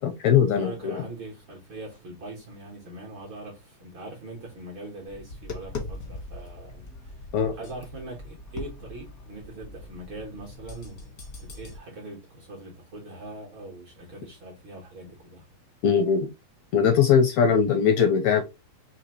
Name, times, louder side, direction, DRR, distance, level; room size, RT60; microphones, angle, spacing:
voice 1, 0.0-1.0 7.3-7.5 15.8-16.3 16.7-18.4, left 7 dB, 80° left, 1.7 m, -21 dB
voice 2, 0.5-7.1 7.5-15.5, right 2 dB, 55° right, 1.5 m, -42 dB
Tap, 5.1-11.8, left 2 dB, 55° left, 0.9 m, -41 dB
5.0 x 2.9 x 2.8 m
omnidirectional pair, 3.6 m